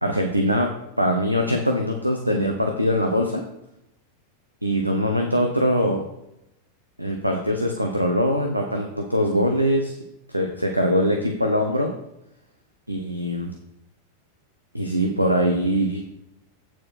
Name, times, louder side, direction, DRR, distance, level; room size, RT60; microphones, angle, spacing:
voice 1, 0.0-0.7 1.0-3.4 4.6-6.1 7.0-10.0 10.3-11.9 12.9-13.5 14.7-16.0, equal, 90° right, 3 dB, 0.8 m, -22 dB
8.5 x 4.6 x 5.8 m, 0.85 s
figure-of-eight pair, 90°, 0 cm